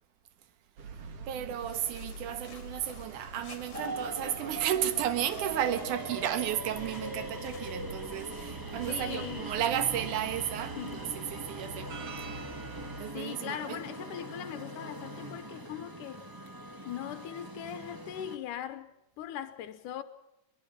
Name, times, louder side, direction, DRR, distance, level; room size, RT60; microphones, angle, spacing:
sound 1, 0.8-13.1, right 4 dB, 55° right, 2.4 m, -45 dB
voice 1, 0.9-11.9 13.0-13.8, right 10 dB, 75° right, 2.8 m, -33 dB
sound 2, 1.6-9.6, left 7 dB, 55° left, 2.5 m, -54 dB
sound 3, 3.7-18.4, right 1 dB, 35° right, 0.3 m, -42 dB
voice 2, 8.9-9.5 10.8-11.2 13.1-16.3 16.8-20.0, left 11 dB, 80° left, 2.5 m, -40 dB
23.0 x 22.0 x 5.7 m
omnidirectional pair, 3.7 m